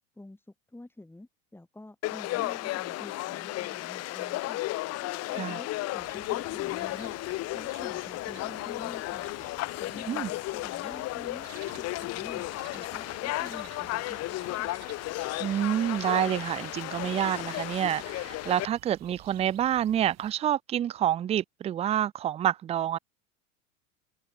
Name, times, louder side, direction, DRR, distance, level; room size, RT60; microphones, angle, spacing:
voice 1, 0.1-4.6 5.0-7.2 7.5-9.4 9.8-11.5 11.8-12.5 12.7-14.8, left 2 dB, 5° left, 6.5 m, -48 dB
Conversation / Crowd, 2.0-18.6, left 18 dB, 40° left, 1.3 m, -34 dB
sound 1, 6.0-20.3, right 15 dB, 40° right, 5.3 m, -53 dB
voice 2, 15.4-23.0, right 11 dB, 15° right, 0.5 m, -28 dB
hypercardioid pair, 90°, 41 cm